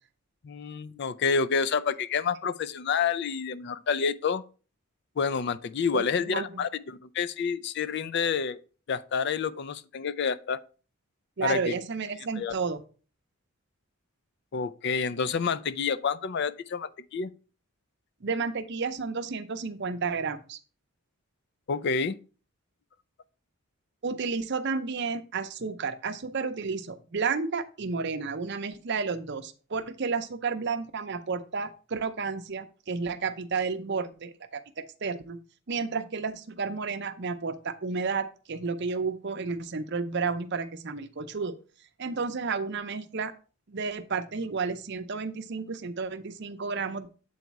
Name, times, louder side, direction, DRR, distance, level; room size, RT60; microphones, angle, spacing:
voice 1, 0.4-4.4 5.2-8.6 8.9-10.6 11.4-11.7 12.4-12.5 14.5-17.3 21.7-22.2, left 5 dB, 50° left, 0.4 m, -28 dB
voice 2, 5.9-6.6 11.4-12.8 18.2-20.6 24.0-35.4 35.7-41.6 42.0-43.3 43.7-47.1, right 4 dB, 55° right, 0.6 m, -32 dB
7.8 x 4.1 x 4.6 m
head